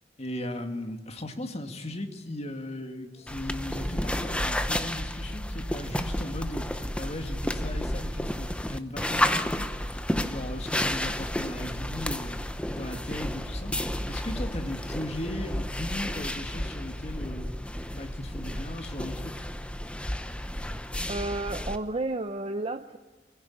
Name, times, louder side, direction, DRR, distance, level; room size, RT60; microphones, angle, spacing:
voice 1, 0.2-6.7 7.0-10.0 10.3-12.4 12.7-17.5 17.9-19.3, left 1 dB, 35° left, 5 dB, 2.1 m, -37 dB
sound 1, 3.0-11.0, left 1 dB, 65° left, 5.1 m, -52 dB
sound 2, 3.3-21.8, left 1 dB, 5° left, 0.9 m, -31 dB
voice 2, 21.1-23.0, right 2 dB, 35° right, 8 dB, 0.7 m, -31 dB
24.0 x 16.5 x 8.8 m, 1.3 s
head